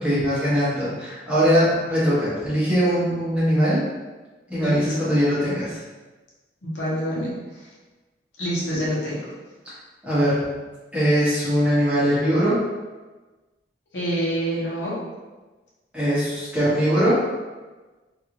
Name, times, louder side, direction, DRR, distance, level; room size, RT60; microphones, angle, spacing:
voice 1, 0.0-3.8 4.5-5.8 10.0-10.4 10.9-12.6 15.9-17.2, equal, 5° right, -12 dB, 1.0 m, -21 dB
voice 2, 4.6-5.1 6.6-7.3 8.4-9.3 13.9-14.9, equal, 80° left, -6 dB, 0.8 m, -27 dB
2.5 x 2.5 x 2.8 m, 1.2 s
head